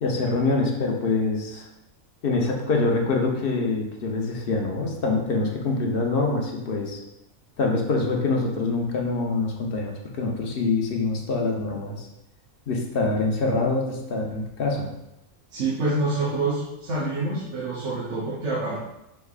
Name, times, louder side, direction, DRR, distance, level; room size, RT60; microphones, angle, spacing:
voice 1, 0.0-1.7 2.2-7.0 7.6-12.1 12.7-14.9, left 3 dB, 55° left, 0 dB, 0.7 m, -25 dB
voice 2, 15.5-18.8, right 2 dB, 65° right, -8 dB, 1.2 m, -27 dB
5.4 x 3.3 x 2.4 m, 0.90 s
omnidirectional pair, 1.4 m